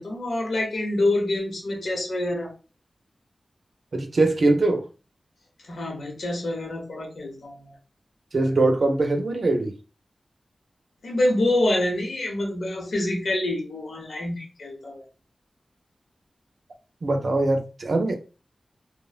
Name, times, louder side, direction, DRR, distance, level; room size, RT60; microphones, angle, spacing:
voice 1, 0.0-2.5 5.7-7.7 11.0-15.0, left 1 dB, 90° left, 0.9 m, -26 dB
voice 2, 3.9-4.8 8.3-9.7 17.0-18.1, right 2 dB, 70° right, 0.4 m, -22 dB
3.0 x 2.1 x 2.3 m
cardioid pair, 55°, 0 cm